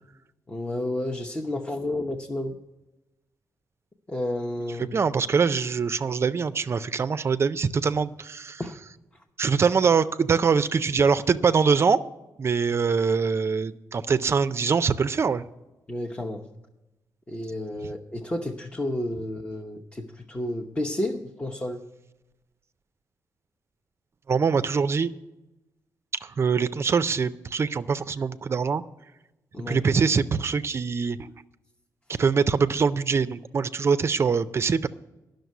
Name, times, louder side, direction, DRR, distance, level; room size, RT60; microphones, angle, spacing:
voice 1, 0.5-2.6 4.1-5.0 8.6-8.7 15.9-16.4 17.3-21.8 29.5-29.8, left 1 dB, 20° left, 2 dB, 0.8 m, -31 dB
voice 2, 4.9-8.6 9.4-12.0 12.4-15.4 24.3-25.1 26.2-28.8 29.7-31.2 32.2-34.9, right 5 dB, 40° right, 13 dB, 0.4 m, -23 dB
11.0 x 6.5 x 9.2 m, 1.0 s
cardioid pair, 110°, 7 cm